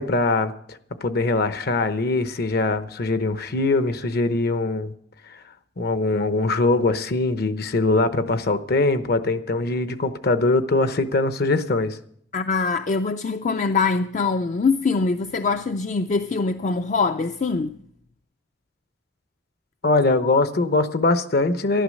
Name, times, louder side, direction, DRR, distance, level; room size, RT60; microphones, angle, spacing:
voice 1, 0.0-4.9 5.3-5.4 5.8-12.0 19.8-21.8, left 2 dB, 55° left, 0.8 m, -22 dB
voice 2, 12.3-17.8, left 4 dB, 40° left, 0.4 m, -23 dB
11.5 x 11.5 x 6.4 m
head